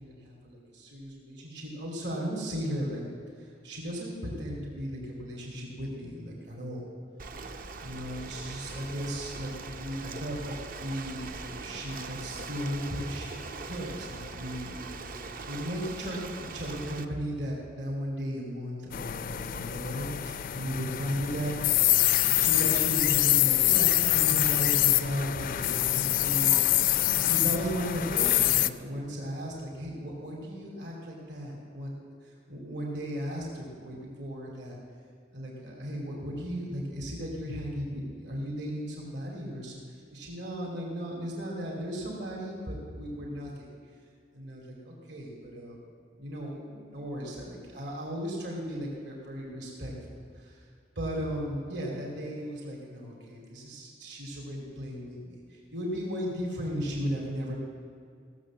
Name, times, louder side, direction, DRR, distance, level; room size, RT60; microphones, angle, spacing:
voice 1, 0.0-3.0 3.4-6.8 7.8-13.3 13.6-15.0 15.4-21.5 22.3-31.9 32.2-34.8 35.3-39.8 40.1-43.7 44.3-45.8 46.2-50.6 51.0-57.5, equal, 65° right, -2 dB, 2.7 m, -36 dB
Ocean, 7.2-17.0, right 4 dB, 50° right, 0.6 m, -41 dB
sound 1, 18.9-28.7, left 14 dB, 50° left, 0.4 m, -25 dB
16.5 x 7.1 x 7.5 m, 2.2 s
head